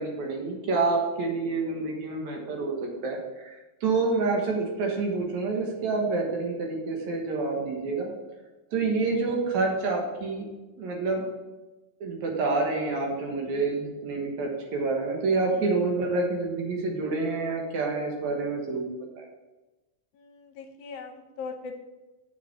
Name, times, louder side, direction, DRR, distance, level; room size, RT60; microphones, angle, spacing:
voice 1, 0.0-8.1 8.7-10.5 10.8-11.2 12.0-18.9 19.2-19.3, right 3 dB, 65° right, 0 dB, 2.6 m, -28 dB
voice 2, 20.1-21.8, left 4 dB, 75° left, 6 dB, 2.0 m, -40 dB
7.6 x 5.9 x 5.9 m, 1.1 s
omnidirectional pair, 3.7 m